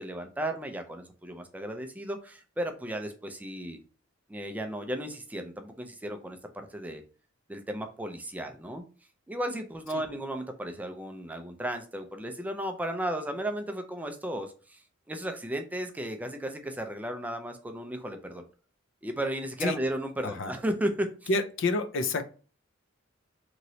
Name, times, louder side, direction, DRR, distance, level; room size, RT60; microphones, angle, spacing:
voice 1, 0.0-3.8 4.3-7.0 7.5-8.8 9.3-18.4 19.0-21.3, right 1 dB, 10° right, 6 dB, 0.3 m, -34 dB
voice 2, 21.3-22.2, left 3 dB, 65° left, 10 dB, 0.4 m, -28 dB
3.0 x 2.9 x 2.7 m, 0.37 s
head